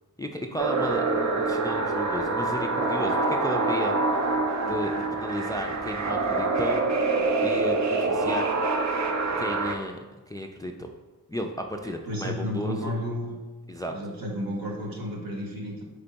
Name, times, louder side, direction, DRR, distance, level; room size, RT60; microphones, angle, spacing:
voice 1, 0.2-4.0 4.6-6.9 7.4-8.5 9.4-10.0 10.3-10.9 11.3-12.9 13.7-13.9, left 1 dB, 10° left, 3 dB, 0.3 m, -33 dB
sound 1, 0.6-9.8, right 3 dB, 50° right, 0.6 m, -26 dB
voice 2, 11.8-13.4 13.9-15.8, left 1 dB, 70° right, 0 dB, 1.1 m, -32 dB
3.6 x 3.3 x 4.0 m, 1.2 s
cardioid pair, 50°, 36 cm